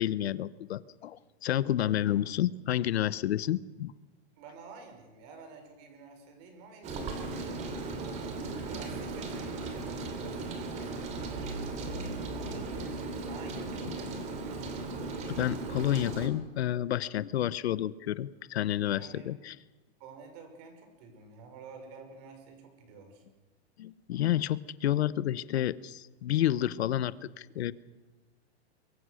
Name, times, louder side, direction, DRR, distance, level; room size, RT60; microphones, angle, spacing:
voice 1, 0.0-3.9 15.3-19.5 23.8-27.7, left 12 dB, 75° left, 17 dB, 1.0 m, -30 dB
voice 2, 2.0-2.4 4.4-8.2 8.7-14.6 19.0-19.3 20.0-23.2, right 4 dB, 40° right, 6 dB, 5.5 m, -50 dB
Rain, 6.8-16.3, right 3 dB, 20° right, 2.9 m, -37 dB
sound 1, 11.2-13.8, equal, 15° left, 7.2 m, -44 dB
24.0 x 23.5 x 6.5 m, 1.2 s
supercardioid pair, 170°, 32 cm